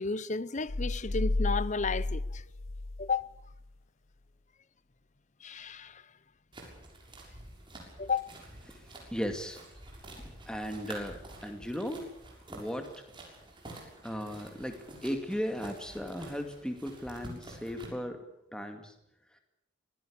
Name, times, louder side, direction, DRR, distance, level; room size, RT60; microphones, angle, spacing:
voice 1, 0.0-2.4 3.0-3.3 5.4-5.9 8.0-8.3, left 4 dB, 35° left, 0.8 m, -32 dB
sound 1, 0.7-3.7, left 2 dB, 85° left, 1.0 m, -32 dB
sound 2, 6.5-17.9, right 1 dB, 25° right, 6.7 m, -49 dB
voice 2, 8.7-9.6 10.1-12.1 12.5-12.9 14.0-18.2 18.5-18.9, equal, 5° left, 2.3 m, -37 dB
25.0 x 17.0 x 8.7 m
head